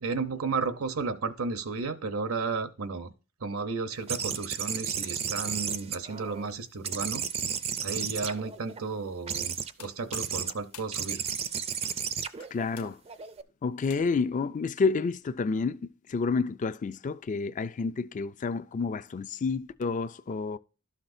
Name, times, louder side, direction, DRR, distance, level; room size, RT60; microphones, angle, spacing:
voice 1, 0.0-3.1 3.4-7.2 7.8-11.2, right 4 dB, 80° right, 0.8 m, -33 dB
sound 1, 4.1-6.5 6.8-8.8 9.3-9.7 10.1-10.5 10.9-13.4, right 7 dB, 30° right, 0.4 m, -33 dB
sound 2, 9.6-14.4, left 9 dB, 85° left, 0.7 m, -52 dB
voice 2, 12.5-13.0 13.6-20.6, left 4 dB, 35° left, 0.4 m, -29 dB
12.0 x 5.8 x 2.6 m
head